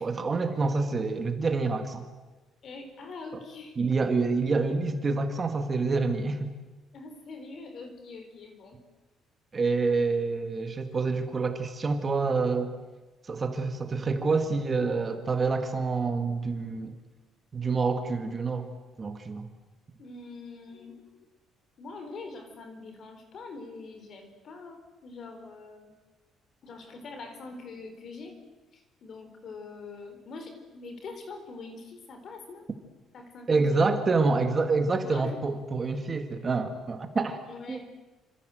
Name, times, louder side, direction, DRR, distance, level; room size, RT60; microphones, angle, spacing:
voice 1, 0.0-2.0 3.8-6.5 9.5-12.8 13.3-17.0 17.5-18.7 19.0-19.5 33.5-37.4 37.7-37.8, right 4 dB, 25° right, 7 dB, 1.8 m, -27 dB
voice 2, 2.6-3.9 6.9-8.8 20.0-21.1 21.8-26.0 26.6-28.4 28.7-32.7 33.1-33.8 35.0-35.4 37.4-37.8, left 3 dB, 40° left, 7 dB, 4.3 m, -44 dB
27.0 x 26.5 x 7.8 m, 1.2 s
cardioid pair, 170°, 0 cm